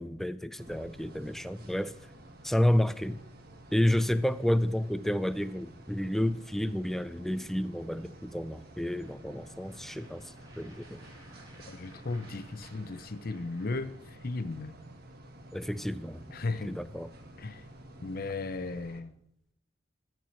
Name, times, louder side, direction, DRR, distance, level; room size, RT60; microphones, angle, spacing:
voice 1, 0.0-2.0 2.4-3.2 3.7-11.0 15.5-16.2 16.6-17.1, left 1 dB, ahead, 0.3 m, -30 dB
sound 1, 0.6-19.0, right 1 dB, 55° right, 1.5 m, -51 dB
sound 2, 7.8-14.4, right 1 dB, 20° right, 2.6 m, -59 dB
voice 2, 11.7-14.0 14.2-14.8 16.3-16.8 17.4-17.6 18.0-19.2, left 3 dB, 55° left, 0.7 m, -35 dB
13.0 x 4.7 x 8.4 m
head